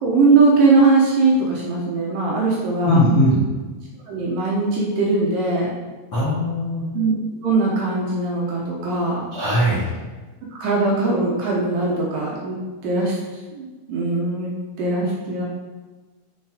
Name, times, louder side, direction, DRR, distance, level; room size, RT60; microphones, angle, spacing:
voice 1, 0.0-3.0 4.1-5.7 6.9-7.2 7.4-9.2 10.6-12.6 12.8-13.2 13.5-14.5 14.8-15.4, right 3 dB, 90° right, -3 dB, 1.9 m, -20 dB
voice 2, 2.8-3.4 6.1-6.8 9.3-9.9, left 1 dB, 35° left, -10 dB, 2.3 m, -19 dB
9.3 x 4.7 x 4.9 m, 1.3 s
omnidirectional pair, 5.7 m